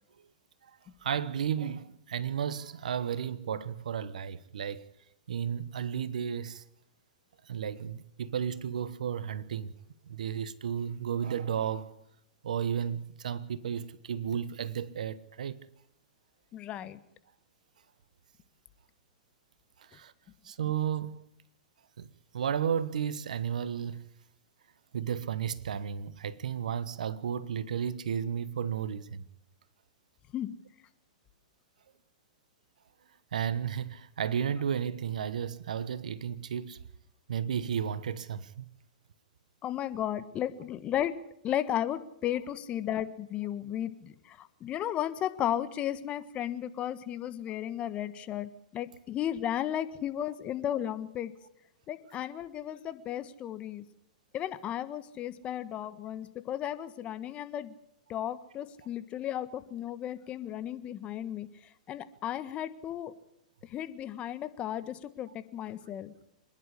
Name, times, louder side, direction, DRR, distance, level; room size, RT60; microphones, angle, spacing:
voice 1, 1.0-4.8 5.3-6.6 7.5-9.7 10.1-12.0 12.4-15.6 19.8-20.1 20.4-21.2 22.0-22.1 22.3-24.1 24.9-29.2 33.3-36.8 37.3-38.7, right 8 dB, 75° right, 1.1 m, -33 dB
voice 2, 16.5-17.0 30.3-30.6 39.6-41.2 41.4-51.3 51.9-53.8 54.3-57.8 58.1-61.5 61.9-63.1 63.7-66.1, left 11 dB, 30° left, 1.4 m, -34 dB
26.0 x 11.0 x 9.9 m
hypercardioid pair, 115°, 4 cm